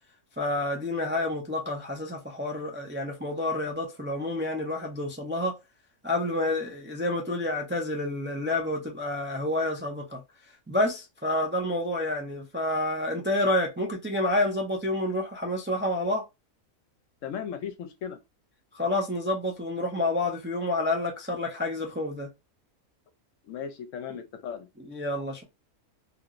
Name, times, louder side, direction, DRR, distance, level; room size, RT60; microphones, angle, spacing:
voice 1, 0.4-5.5 6.0-10.2 10.7-16.3 18.7-22.3 24.1-24.2 24.9-25.4, left 1 dB, 20° right, 0.3 m, -29 dB
voice 2, 17.2-18.2 23.5-24.7, left 8 dB, 75° left, 1.0 m, -36 dB
2.9 x 2.8 x 2.5 m
omnidirectional pair, 1.4 m